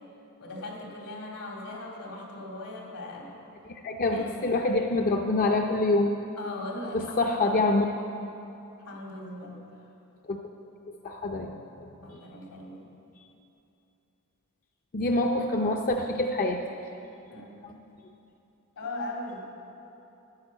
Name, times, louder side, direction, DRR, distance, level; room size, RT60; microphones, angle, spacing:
voice 1, 0.4-3.3 4.1-4.5 6.4-7.6 8.8-9.6 12.0-12.9 17.3-17.8 18.8-19.4, left 2 dB, 85° left, -1 dB, 2.7 m, -39 dB
voice 2, 3.7-6.2 6.9-7.9 10.3-10.4 11.0-11.6 14.9-16.6, left 2 dB, 40° left, 3 dB, 0.5 m, -26 dB
10.5 x 9.8 x 7.3 m, 2.9 s
head